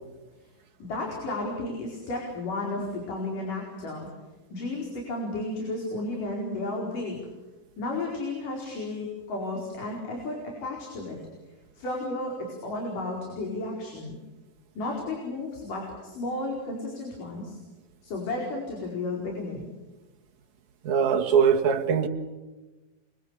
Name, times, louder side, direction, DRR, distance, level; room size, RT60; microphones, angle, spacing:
voice 1, 0.8-4.1 4.5-7.2 7.8-11.2 11.8-14.2 14.8-17.6 18.0-19.7, left 2 dB, 65° left, 6.3 m, -33 dB
voice 2, 20.8-22.1, right 7 dB, 60° right, 3.2 m, -21 dB
29.5 x 24.0 x 8.3 m
omnidirectional pair, 4.0 m